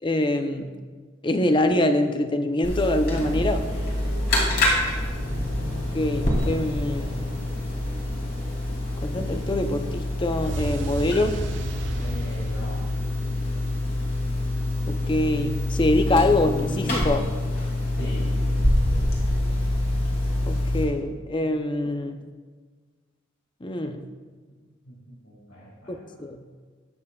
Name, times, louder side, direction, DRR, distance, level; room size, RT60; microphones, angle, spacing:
voice 1, 0.0-0.7 1.2-3.7 5.9-7.1 9.0-11.4 14.9-17.3 20.5-22.2 23.6-24.1 25.9-26.4, left 1 dB, 25° left, 7 dB, 0.6 m, -24 dB
sound 1, 2.6-20.8, left 1 dB, 50° left, 2.8 m, -26 dB
sound 2, 3.1-20.6, equal, 85° right, 3.0 m, -39 dB
voice 2, 3.6-4.7 11.9-12.8 18.0-18.8 24.5-26.0, equal, 75° left, -5 dB, 2.3 m, -41 dB
sound 3, 10.4-13.5, right 3 dB, 60° right, 0.5 m, -35 dB
20.0 x 7.3 x 2.3 m, 1.5 s
head